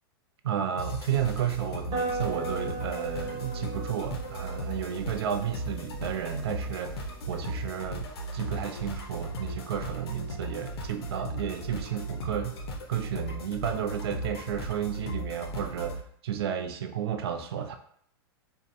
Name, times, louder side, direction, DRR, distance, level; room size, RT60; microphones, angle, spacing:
voice 1, 0.4-12.6 12.9-17.7, right 9 dB, 75° right, 6 dB, 0.4 m, -32 dB
sound 1, 0.8-16.0, equal, 75° left, 0.5 m, -37 dB
sound 2, 1.9-7.7, right 3 dB, 35° right, 1.1 m, -38 dB
2.6 x 2.1 x 2.5 m, 0.64 s
hypercardioid pair, 110°, 13 cm